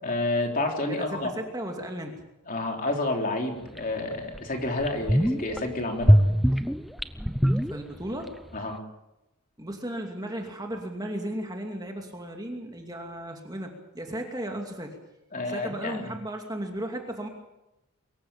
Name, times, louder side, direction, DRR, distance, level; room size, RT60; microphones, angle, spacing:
voice 1, 0.0-1.3 2.5-6.2 8.5-8.8 15.3-16.1, left 2 dB, 40° left, 2 dB, 3.5 m, -29 dB
voice 2, 0.9-2.2 7.7-8.3 9.6-15.0 15.5-17.3, right 1 dB, 15° right, 2 dB, 2.6 m, -35 dB
sound 1, 3.8-3.9 4.3-4.4 4.8-5.6 6.0-8.3 8.5-8.6, equal, ahead, 0.7 m, -22 dB
23.5 x 15.0 x 8.9 m, 0.92 s
head